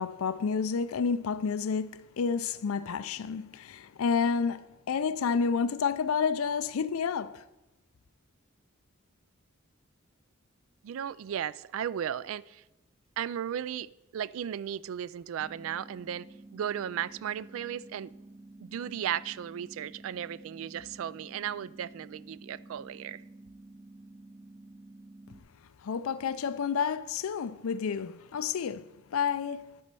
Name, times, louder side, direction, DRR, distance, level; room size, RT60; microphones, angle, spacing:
voice 1, 0.0-7.4 25.8-29.8, left 6 dB, 80° left, 0.4 m, -30 dB
voice 2, 10.8-12.6 13.2-16.3 16.5-18.1 18.6-23.2, right 9 dB, 70° right, 0.3 m, -35 dB
sound 1, 15.4-25.4, right 2 dB, 5° right, 0.5 m, -51 dB
12.0 x 4.3 x 6.8 m
head